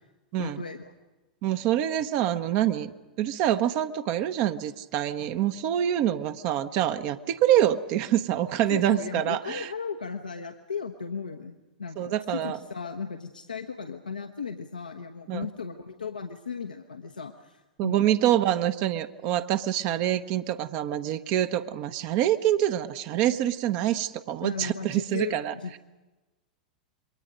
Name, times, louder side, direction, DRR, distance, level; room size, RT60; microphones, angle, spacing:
voice 1, 0.4-0.9 8.7-18.1 24.4-25.8, left 5 dB, 85° left, 4 dB, 1.1 m, -36 dB
voice 2, 1.4-2.9 3.2-9.7 12.0-12.6 15.3-15.5 17.8-25.5, right 12 dB, 45° right, 10 dB, 1.1 m, -26 dB
27.5 x 22.5 x 5.2 m, 1.1 s
figure-of-eight pair, 95°, 4 cm